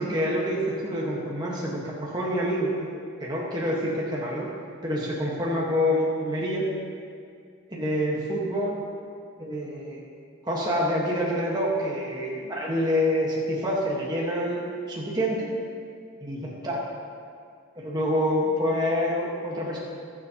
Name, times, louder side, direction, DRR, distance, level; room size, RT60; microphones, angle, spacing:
voice 1, 0.0-2.9 3.2-4.5 4.8-6.6 7.7-8.8 9.4-10.0 10.4-15.5 16.2-16.8 17.8-19.8, equal, 20° right, -4 dB, 1.3 m, -27 dB
21.5 x 7.2 x 2.9 m, 2.2 s
head